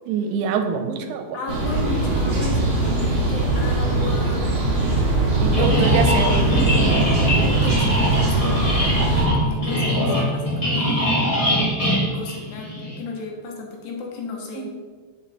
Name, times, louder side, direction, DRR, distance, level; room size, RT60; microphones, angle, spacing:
voice 1, 0.1-1.4 5.4-6.5 14.5-14.7, right 5 dB, 85° right, 6 dB, 3.1 m, -24 dB
voice 2, 1.3-4.5 5.0-5.3 5.6-5.9 6.2-6.3 6.5-6.7 7.3-8.8 9.1-11.3 11.8-14.7, left 4 dB, 70° left, 0 dB, 3.1 m, -34 dB
sound 1, 1.5-9.3, right 2 dB, 45° right, 2.5 m, -21 dB
sound 2, 5.5-13.0, equal, 15° left, 1.0 m, -22 dB
8.5 x 7.2 x 4.2 m, 1.5 s
omnidirectional pair, 5.3 m